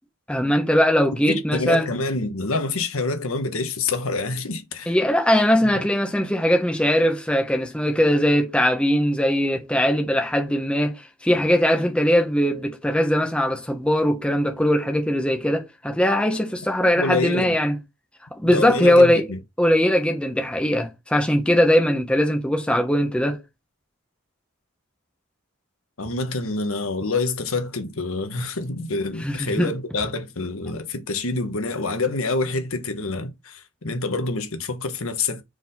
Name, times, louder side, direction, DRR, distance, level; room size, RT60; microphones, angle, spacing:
voice 1, 0.3-1.9 4.9-17.7 18.3-19.3 19.6-23.4 29.2-29.7, equal, 5° left, 1.0 m, -20 dB
voice 2, 1.3-5.0 5.7-5.8 16.9-17.6 18.4-19.4 26.0-35.4, left 3 dB, 70° left, 1.2 m, -27 dB
4.8 x 4.1 x 5.4 m
head